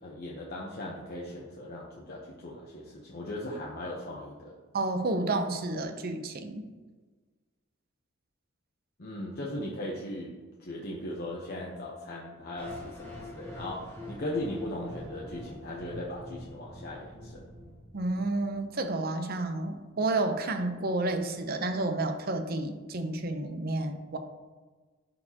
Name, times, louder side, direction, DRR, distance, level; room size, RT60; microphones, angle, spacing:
voice 1, 0.0-4.6 9.0-17.5, left 1 dB, 50° left, -3 dB, 0.9 m, -38 dB
voice 2, 4.7-6.7 17.9-24.2, right 2 dB, 50° right, 6 dB, 0.7 m, -30 dB
sound 1, 12.6-18.6, left 1 dB, 10° left, 1.9 m, -44 dB
11.5 x 4.3 x 2.9 m, 1.3 s
head